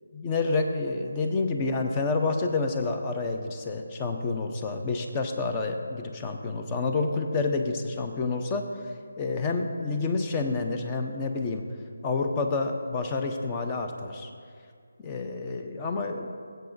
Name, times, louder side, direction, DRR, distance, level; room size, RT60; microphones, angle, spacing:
voice 1, 0.1-8.6 9.2-11.6 12.0-14.3 15.0-16.3, left 3 dB, 20° left, 4 dB, 0.7 m, -28 dB
19.5 x 7.8 x 2.6 m, 2.2 s
figure-of-eight pair, 155°, 0 cm